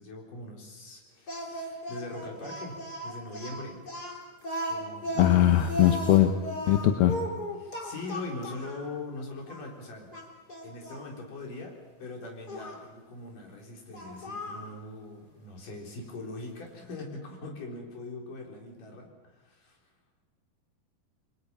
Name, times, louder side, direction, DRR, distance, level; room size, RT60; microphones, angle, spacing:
voice 1, 0.0-3.8 4.7-5.2 7.6-10.1 10.6-19.8, left 2 dB, 60° left, 0 dB, 5.5 m, -41 dB
Speech, 1.3-8.8 9.5-9.6 10.1-11.1 12.5-12.8 13.9-14.7, equal, 25° left, 3.6 m, -36 dB
voice 2, 5.2-6.3 6.7-7.2, left 12 dB, 85° left, 5 dB, 3.0 m, -21 dB
sound 1, 5.3-6.2, right 2 dB, 30° right, 6.7 m, -53 dB
29.0 x 22.5 x 5.6 m, 1.2 s
omnidirectional pair, 4.3 m